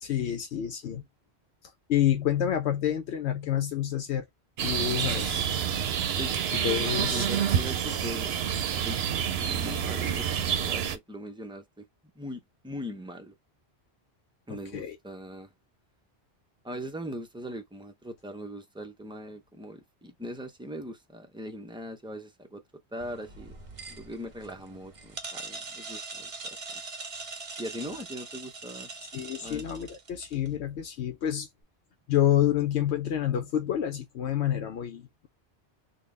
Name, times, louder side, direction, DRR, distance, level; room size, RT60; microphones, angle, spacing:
voice 1, 0.0-1.0 1.6-4.3 4.6-5.5 6.6-7.3 14.7-15.0 29.1-31.5 32.1-35.3, left 11 dB, 80° left, 0.9 m, -28 dB
sound 1, 4.6-11.0, right 8 dB, 70° right, 0.9 m, -28 dB
voice 2, 6.9-8.3 8.8-11.9 12.1-13.3 14.5-15.5 16.6-22.6 22.9-23.6 23.9-26.8 27.6-28.9 29.4-29.7, equal, 5° right, 0.5 m, -40 dB
sound 2, 23.0-30.5, right 3 dB, 35° right, 0.7 m, -42 dB
3.8 x 2.3 x 3.2 m
omnidirectional pair, 1.1 m